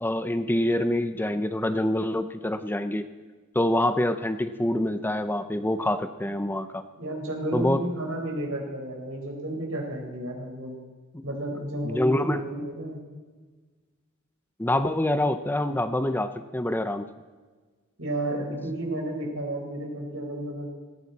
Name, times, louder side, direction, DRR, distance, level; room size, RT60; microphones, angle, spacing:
voice 1, 0.0-3.0 3.5-6.8 7.5-7.8 11.1-11.2 11.8-12.4 14.6-17.1, left 1 dB, 10° left, 10 dB, 0.5 m, -26 dB
voice 2, 7.0-10.8 11.2-13.0 18.0-20.7, right 1 dB, 90° right, 0 dB, 4.4 m, -32 dB
18.5 x 15.0 x 4.1 m, 1.4 s
head